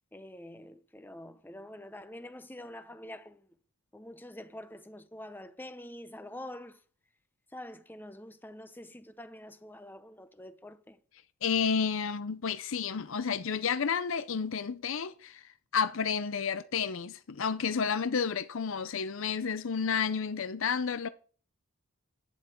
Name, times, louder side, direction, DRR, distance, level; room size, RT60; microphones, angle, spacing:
voice 1, 0.1-3.5 3.9-6.8 7.5-11.0, left 1 dB, 10° left, 0.8 m, -46 dB
voice 2, 11.4-21.1, left 6 dB, 65° left, 0.5 m, -31 dB
11.5 x 9.8 x 4.5 m
head